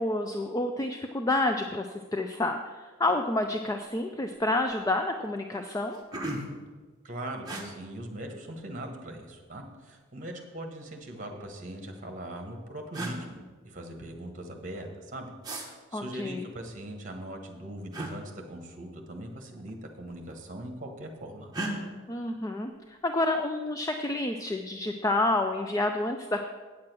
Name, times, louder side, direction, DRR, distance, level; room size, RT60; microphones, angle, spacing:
voice 1, 0.0-6.0 15.9-16.5 22.1-26.4, left 2 dB, 15° left, 5 dB, 0.3 m, -29 dB
sound 1, 3.7-4.0 4.3-4.8 5.4-5.5 5.7-6.7 7.4-7.6 8.9-9.5 10.7-11.5 12.4-12.5 12.9-13.2 15.4-15.7 17.9-18.1 19.5-19.7 20.0-20.6 21.5-21.7, right 1 dB, 20° right, 1.2 m, -37 dB
voice 2, 7.0-21.5, right 1 dB, 35° right, 3 dB, 1.3 m, -41 dB
8.5 x 7.5 x 6.1 m, 1.4 s
head